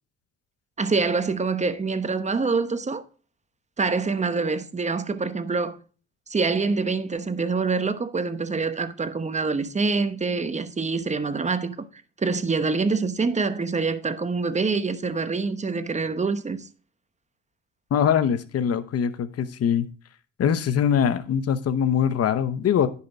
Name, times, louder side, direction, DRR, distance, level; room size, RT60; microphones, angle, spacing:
voice 1, 0.8-3.0 3.8-5.8 6.3-11.9 12.2-16.7, right 4 dB, 25° right, 1.0 m, -25 dB
voice 2, 17.9-19.9 20.4-22.9, left 8 dB, 55° left, 0.9 m, -22 dB
10.0 x 5.8 x 4.5 m
cardioid pair, 90°, 30 cm